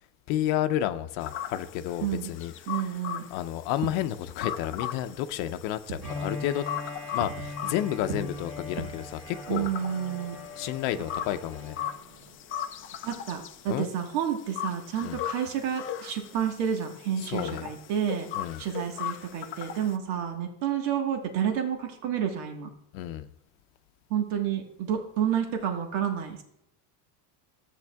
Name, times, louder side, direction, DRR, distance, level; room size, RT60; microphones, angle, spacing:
voice 1, 0.3-2.5 3.3-6.7 7.1-9.7 10.6-11.8 13.7-13.9 15.0-15.2 17.2-17.7 18.3-18.6 22.9-23.3, left 12 dB, 75° left, 10 dB, 0.7 m, -31 dB
sound 1, 1.2-20.0, left 10 dB, 30° left, 0.4 m, -39 dB
voice 2, 2.7-3.3 9.5-10.3 13.0-18.3 18.6-22.7 24.1-26.4, right 9 dB, 80° right, 4 dB, 1.5 m, -30 dB
Fireworks, 3.6-12.9, right 7 dB, 65° right, 1.4 m, -45 dB
Bowed string instrument, 6.0-12.0, left 3 dB, ahead, 1.7 m, -40 dB
13.0 x 8.2 x 2.3 m, 0.77 s
cardioid pair, 145°, 47 cm